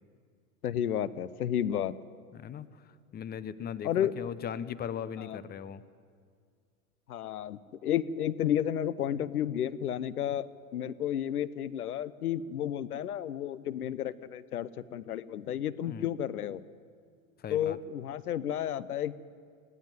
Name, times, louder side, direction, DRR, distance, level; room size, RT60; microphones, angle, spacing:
voice 1, 0.6-2.0 3.8-4.1 5.3-5.4 7.1-16.6 17.5-19.2, left 10 dB, 85° left, 17 dB, 0.9 m, -32 dB
voice 2, 2.3-2.8 3.1-5.8 15.8-16.1 17.4-17.8, left 8 dB, 20° left, 15 dB, 0.9 m, -38 dB
19.5 x 17.5 x 9.3 m, 2.1 s
hypercardioid pair, 110°, 43 cm